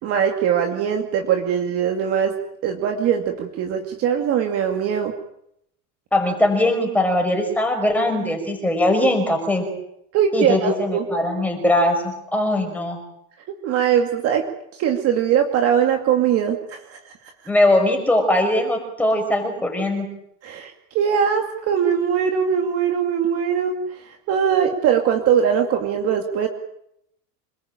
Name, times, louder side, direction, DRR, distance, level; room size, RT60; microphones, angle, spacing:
voice 1, 0.0-2.4 2.6-5.1 10.1-11.0 13.6-14.5 14.7-17.0 20.4-23.8 24.0-26.5, right 8 dB, 30° right, 4 dB, 2.4 m, -21 dB
voice 2, 6.1-9.6 10.3-13.0 17.5-20.1, left 1 dB, 5° left, 2 dB, 5.5 m, -20 dB
27.5 x 20.5 x 8.9 m, 0.76 s
supercardioid pair, 180°, 45 cm